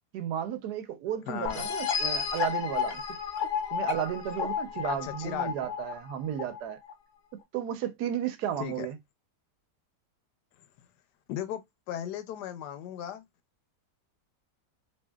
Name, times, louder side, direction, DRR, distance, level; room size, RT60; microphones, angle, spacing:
voice 1, 0.1-3.0 3.7-6.8 7.5-9.0, right 10 dB, 75° right, 1.2 m, -33 dB
voice 2, 1.3-1.7 4.8-5.5 8.6-8.9 11.3-13.2, left 10 dB, 80° left, 1.2 m, -36 dB
sound 1, 1.4-6.9, left 7 dB, 65° left, 0.8 m, -32 dB
3.0 x 2.7 x 2.2 m
omnidirectional pair, 1.8 m